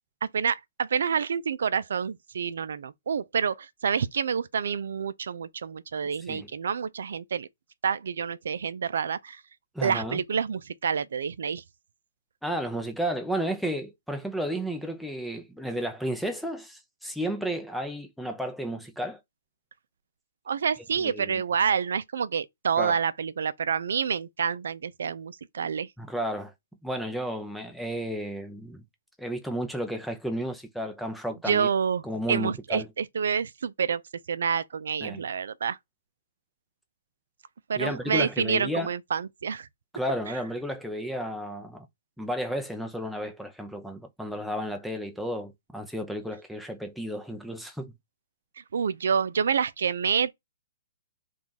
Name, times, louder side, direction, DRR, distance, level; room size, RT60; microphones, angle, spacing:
voice 1, 0.2-7.5 7.8-9.4 9.8-11.6 20.5-25.9 31.5-32.0 32.3-34.0 34.3-35.8 37.7-39.7 48.7-50.3, right 6 dB, 75° right, 0.4 m, -28 dB
voice 2, 9.7-10.2 12.4-19.2 21.0-21.4 22.8-23.0 26.0-26.5 26.8-28.8 29.2-31.7 32.0-32.9 35.0-35.2 37.7-38.9 39.9-41.9 42.2-47.9, equal, ahead, 0.6 m, -32 dB
3.5 x 2.4 x 3.9 m
hypercardioid pair, 155°, 0 cm